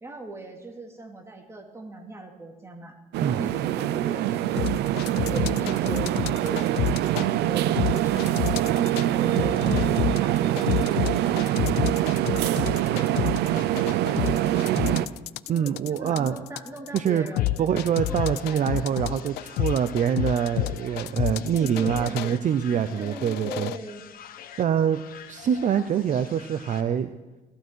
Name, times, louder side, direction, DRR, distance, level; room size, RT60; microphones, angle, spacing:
voice 1, 0.0-4.7 5.3-6.6 7.1-8.3 8.6-11.6 12.6-13.3 14.2-14.8 15.4-18.2 18.4-19.3 21.5-22.3 23.0-24.0, right 2 dB, 15° right, 2 dB, 2.7 m, -39 dB
sound 1, 3.1-15.1, right 13 dB, 80° right, 0.7 m, -24 dB
sound 2, 4.6-7.3 7.8-9.1 9.4-22.3 22.9-23.8, left 16 dB, 80° left, 0.4 m, -29 dB
voice 2, 15.5-16.4 16.9-17.3 17.6-23.7 24.6-25.0 25.3-27.1, right 8 dB, 45° right, 10 dB, 0.7 m, -25 dB
sound 3, 17.2-26.8, left 10 dB, 60° left, 1.1 m, -46 dB
17.0 x 14.5 x 4.7 m, 1.1 s
cardioid pair, 110°, 17 cm